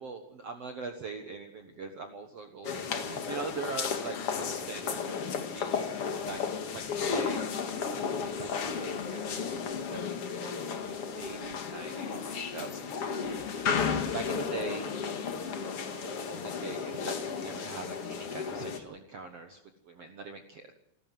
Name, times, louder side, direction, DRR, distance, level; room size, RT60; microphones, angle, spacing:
voice 1, 0.0-6.4 6.7-15.1 15.7-19.6 19.9-20.7, right 4 dB, 70° right, 5 dB, 1.5 m, -43 dB
sound 1, 2.6-18.8, left 6 dB, 50° left, 1.9 m, -34 dB
28.5 x 13.5 x 7.7 m, 0.83 s
omnidirectional pair, 4.9 m